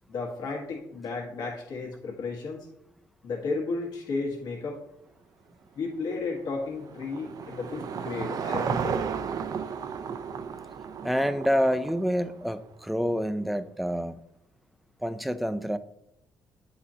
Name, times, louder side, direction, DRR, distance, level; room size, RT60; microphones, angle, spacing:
voice 1, 0.1-2.7 3.2-4.8 5.7-9.0, left 3 dB, 70° left, -2 dB, 1.6 m, -33 dB
Car passing by / Engine, 6.1-12.5, right 6 dB, 55° right, 0.5 m, -34 dB
voice 2, 11.0-14.2 15.0-15.8, equal, ahead, 10 dB, 0.4 m, -27 dB
8.7 x 4.2 x 2.8 m, 0.79 s
cardioid pair, 80°, 7 cm